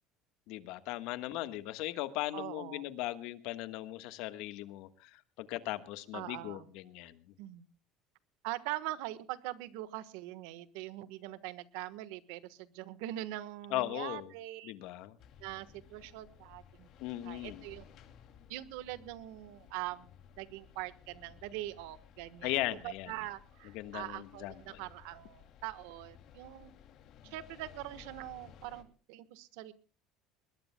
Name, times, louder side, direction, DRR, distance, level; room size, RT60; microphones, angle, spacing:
voice 1, 0.5-7.2 13.7-14.3 14.6-15.2 17.0-17.6 22.4-23.1 23.7-24.8, left 16 dB, 70° left, 12 dB, 1.3 m, -38 dB
voice 2, 2.3-2.9 6.1-6.7 7.4-7.7 8.4-14.7 15.4-16.9 17.2-17.9 18.5-20.1 20.4-26.7 27.2-29.7, right 15 dB, 80° right, 15 dB, 1.3 m, -43 dB
sound 1, 15.2-28.8, left 9 dB, 55° left, 2.6 m, -57 dB
21.0 x 21.0 x 2.2 m, 0.36 s
supercardioid pair, 115°, 0 cm